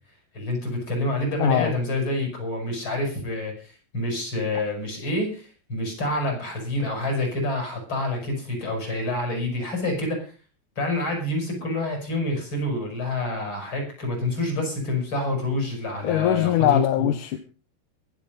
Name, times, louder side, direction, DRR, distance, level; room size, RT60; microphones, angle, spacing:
voice 1, 0.3-10.3 10.8-17.1, left 1 dB, 40° left, 3 dB, 7.6 m, -27 dB
voice 2, 1.4-1.7 16.0-17.4, left 12 dB, 80° left, 9 dB, 2.5 m, -21 dB
23.0 x 8.2 x 5.4 m, 0.36 s
omnidirectional pair, 3.6 m